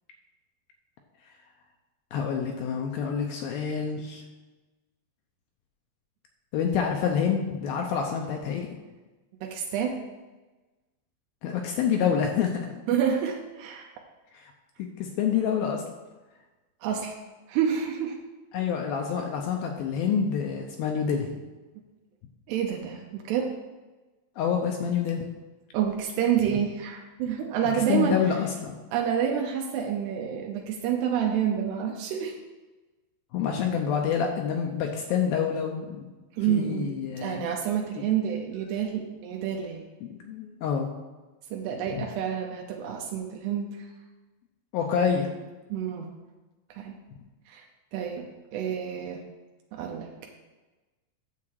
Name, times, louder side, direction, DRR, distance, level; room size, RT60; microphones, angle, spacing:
voice 1, 2.1-4.2 6.5-8.7 11.4-12.8 14.3-14.5 14.8-15.8 18.5-21.4 24.4-25.2 27.9-28.8 33.3-36.1 36.5-37.5 40.0-40.9 41.9-42.1 44.7-45.3, left 7 dB, 75° left, 2 dB, 2.3 m, -27 dB
voice 2, 9.4-10.0 12.9-13.9 16.8-17.1 17.5-18.2 22.5-23.5 25.7-28.2 28.9-32.4 36.3-39.8 41.5-43.9 45.7-46.1 46.7-47.0 47.5-47.7 47.9-49.2 49.7-50.1, right 8 dB, 85° right, 1 dB, 2.9 m, -28 dB
9.7 x 7.3 x 4.7 m, 1.2 s
omnidirectional pair, 4.8 m